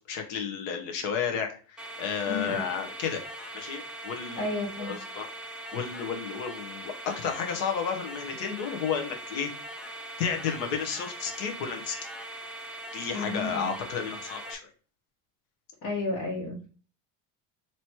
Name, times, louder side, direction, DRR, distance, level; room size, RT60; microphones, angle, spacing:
voice 1, 0.0-3.2 3.5-4.5 4.8-5.3 5.7-9.5 10.2-11.9 12.9-14.7, left 7 dB, 80° left, 4 dB, 1.2 m, -32 dB
sound 1, 1.8-14.5, right 1 dB, ahead, 0.5 m, -41 dB
voice 2, 2.3-2.6 4.3-5.0 13.1-13.7 15.8-16.7, left 2 dB, 65° left, -5 dB, 1.7 m, -32 dB
3.1 x 3.0 x 4.4 m, 0.38 s
cardioid pair, 155°, 39 cm